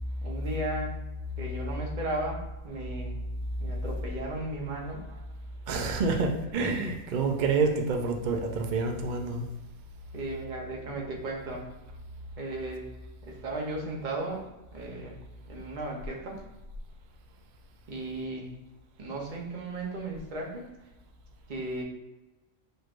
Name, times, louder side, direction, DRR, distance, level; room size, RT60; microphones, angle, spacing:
voice 1, 0.2-0.9 1.4-3.2 3.6-5.0 10.1-11.7 12.4-12.9 13.2-14.4 14.7-15.2 15.5-16.4 17.9-18.6 19.0-20.7 21.5-21.8, right 2 dB, 40° right, 0 dB, 0.9 m, -35 dB
voice 2, 5.7-9.4, right 4 dB, 55° right, 3 dB, 0.5 m, -28 dB
6.4 x 3.1 x 2.5 m, 1.0 s
omnidirectional pair, 1.4 m